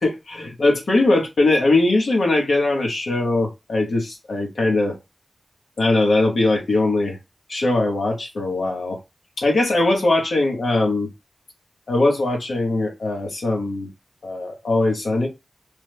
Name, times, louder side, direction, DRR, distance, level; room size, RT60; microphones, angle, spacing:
voice 1, 0.0-5.0 5.8-7.2 7.5-9.0 9.4-11.1 11.9-13.9 14.2-15.3, left 2 dB, 85° left, 1.1 m, -20 dB
3.2 x 2.1 x 3.1 m
cardioid pair, 45°, 0 cm